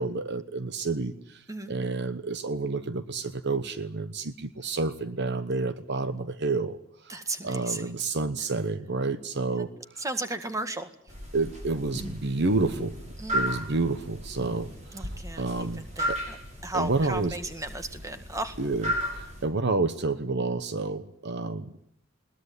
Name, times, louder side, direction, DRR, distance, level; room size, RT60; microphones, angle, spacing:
voice 1, 0.0-1.4 1.7-7.1 7.4-9.7 9.9-10.0 11.3-13.0 13.3-16.2 16.7-17.4 18.6-21.7, right 3 dB, 55° right, 12 dB, 1.0 m, -29 dB
voice 2, 7.1-7.8 10.0-10.9 13.2-13.5 14.9-16.4 16.6-18.6, right 2 dB, 15° right, 9 dB, 1.8 m, -35 dB
sound 1, 11.1-19.4, equal, 35° right, 6.7 m, -35 dB
21.5 x 19.0 x 9.6 m, 0.73 s
head